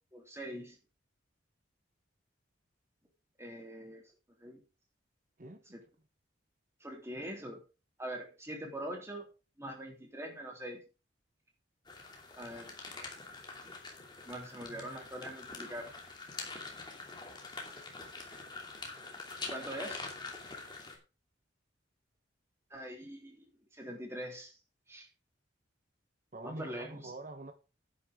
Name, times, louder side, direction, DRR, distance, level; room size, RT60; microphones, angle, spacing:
voice 1, 0.1-0.8 3.4-4.0 4.4-4.6 5.7-5.8 6.8-7.6 8.0-9.3 9.6-10.8 12.3-12.8 14.2-15.9 19.5-20.1 22.7-23.4 23.7-24.6 24.9-25.1 26.4-27.1, right 1 dB, 15° right, 3.3 m, -43 dB
voice 2, 5.4-5.8 14.7-15.0 26.3-27.5, right 2 dB, 40° right, 1.0 m, -46 dB
sound 1, 11.9-21.0, left 3 dB, 25° left, 2.7 m, -45 dB
11.0 x 9.8 x 3.6 m
head